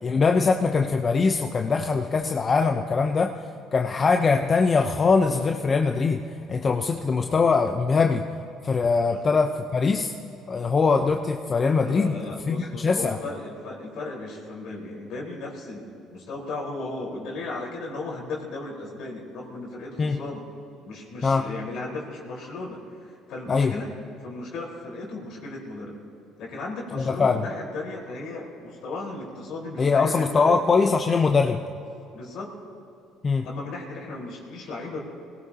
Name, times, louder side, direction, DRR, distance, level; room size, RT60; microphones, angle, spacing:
voice 1, 0.0-3.3 3.7-6.2 6.5-8.3 8.6-10.1 10.5-12.2 12.5-13.2 20.0-20.2 21.2-21.5 23.5-23.7 27.0-27.5 29.8-31.6 33.2-33.5, left 4 dB, 35° left, 4 dB, 0.8 m, -22 dB
voice 2, 11.8-20.5 20.8-23.9 24.2-26.0 26.4-30.6 32.1-32.5 33.4-35.0, left 2 dB, 70° left, -2 dB, 4.5 m, -36 dB
23.0 x 17.5 x 2.9 m, 2.7 s
supercardioid pair, 75°, 0 cm